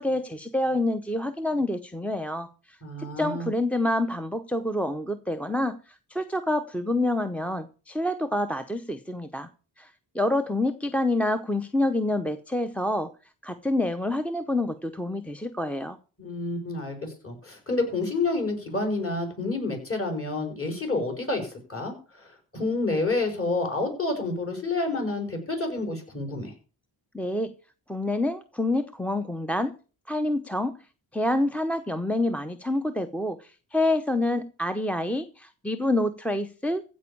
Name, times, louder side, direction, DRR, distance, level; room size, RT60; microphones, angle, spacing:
voice 1, 0.0-9.5 9.8-13.1 13.4-16.0 27.1-27.5 27.9-29.7 30.1-30.8 31.1-36.8, left 1 dB, 5° left, 0.7 m, -27 dB
voice 2, 2.8-3.5 16.2-26.5, left 2 dB, 30° left, 5.7 m, -29 dB
15.5 x 5.3 x 8.5 m
wide cardioid pair, 110°, 43 cm